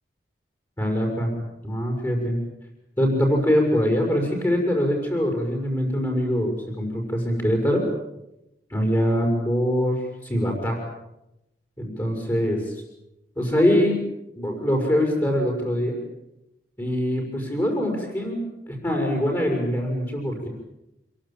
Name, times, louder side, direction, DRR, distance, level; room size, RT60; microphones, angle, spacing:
voice 1, 0.8-1.3 1.6-2.4 3.0-7.8 8.7-10.8 11.8-12.8 13.4-14.0 14.3-16.0 16.8-18.4 18.7-20.5, equal, 15° left, 2 dB, 5.9 m, -23 dB
27.5 x 23.0 x 8.8 m, 0.90 s
head